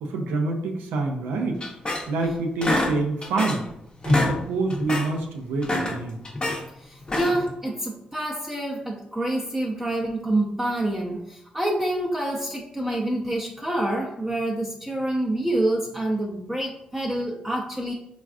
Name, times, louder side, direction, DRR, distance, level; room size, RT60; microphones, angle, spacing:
voice 1, 0.0-1.6 2.1-3.6 4.0-6.2, right 3 dB, 85° right, 2 dB, 0.4 m, -26 dB
sound 1, 1.6-2.3 2.6-3.7 4.0-4.4 4.7-5.1 5.5-6.6 7.0-7.5, left 2 dB, 30° left, 0.6 m, -26 dB
voice 2, 6.8-17.9, right 1 dB, 10° right, -2 dB, 0.5 m, -27 dB
3.3 x 2.3 x 2.3 m, 0.78 s
supercardioid pair, 50°, 3 cm